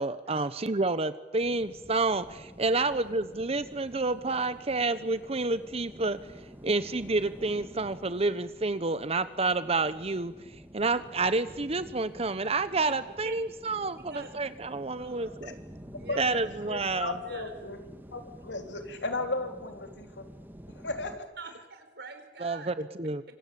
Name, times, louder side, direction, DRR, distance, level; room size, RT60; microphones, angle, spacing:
voice 1, 0.0-6.2 6.6-10.3 10.7-15.6 16.2-17.2 22.4-23.2, right 3 dB, 35° right, 13 dB, 1.0 m, -29 dB
sound 1, 1.4-21.2, equal, 10° right, 2.1 m, -49 dB
voice 2, 15.0-15.3 16.0-16.3 17.2-17.5 21.4-22.7, right 3 dB, 65° right, 7 dB, 4.6 m, -44 dB
voice 3, 16.7-17.8 18.1-20.3 20.8-21.3, left 2 dB, 85° left, 5 dB, 3.6 m, -35 dB
26.0 x 25.5 x 8.5 m, 1.1 s
head